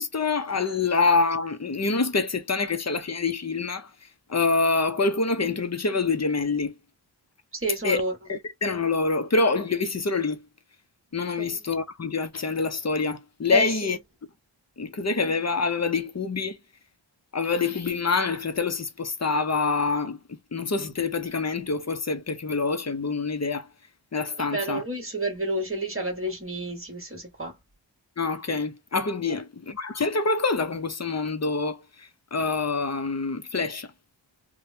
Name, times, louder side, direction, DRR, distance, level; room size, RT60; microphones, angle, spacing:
voice 1, 0.0-3.9 4.3-6.7 7.8-8.0 8.3-10.4 11.1-14.0 14.8-16.6 17.3-23.7 24.1-24.8 28.2-33.9, left 4 dB, 35° left, 0.7 m, -26 dB
voice 2, 7.6-8.1 11.4-11.6 13.5-14.0 24.4-27.6 29.3-29.4, right 2 dB, 25° right, 1.5 m, -30 dB
3.2 x 2.2 x 2.7 m
wide cardioid pair, 45°, 46 cm